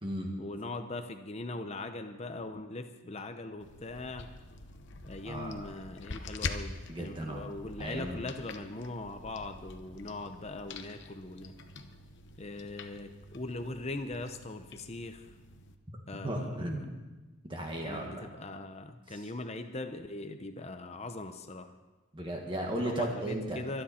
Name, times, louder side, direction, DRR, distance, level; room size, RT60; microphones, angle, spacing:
voice 1, 0.4-4.3 5.0-11.6 12.4-15.3 16.1-17.0 17.8-21.7 22.8-23.8, left 2 dB, 30° left, 7 dB, 0.7 m, -40 dB
sound 1, 3.6-15.7, left 3 dB, 50° left, 0.9 m, -45 dB
voice 2, 5.2-5.6 6.9-7.5 7.8-8.2 16.2-17.0 17.4-18.3 19.1-19.2 22.1-23.6, right 1 dB, 20° right, 0 dB, 1.7 m, -35 dB
24.5 x 10.0 x 4.3 m, 1.2 s
head